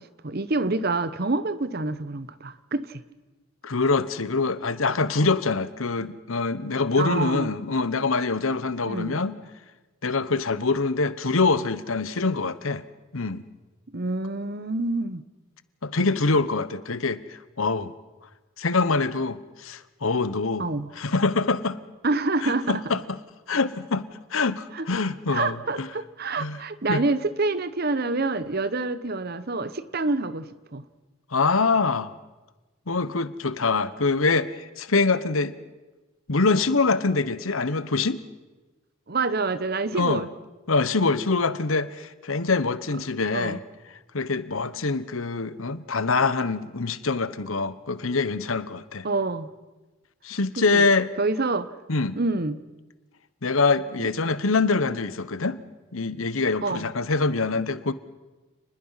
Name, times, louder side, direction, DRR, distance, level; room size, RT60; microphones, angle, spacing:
voice 1, 0.0-3.0 7.0-7.5 8.8-9.2 13.9-15.2 20.6-20.9 22.0-22.8 24.7-24.9 25.3-30.8 39.1-40.3 43.3-43.6 49.0-49.5 50.6-50.9 51.2-51.7 52.1-52.6 54.0-54.1 56.6-56.9, right 3 dB, 50° right, 14 dB, 1.0 m, -27 dB
voice 2, 3.6-9.4 10.0-12.8 13.1-13.4 15.8-17.9 18.6-20.7 21.0-21.8 22.4-23.2 23.5-24.1 24.3-25.9 26.4-26.6 26.9-27.0 31.3-32.1 32.9-35.6 36.3-38.2 39.9-40.3 40.7-43.6 44.1-49.1 50.2-51.1 51.9-52.2 53.4-55.6 55.9-57.9, left 3 dB, 80° left, 14 dB, 1.1 m, -24 dB
29.0 x 20.5 x 5.8 m, 1.2 s
head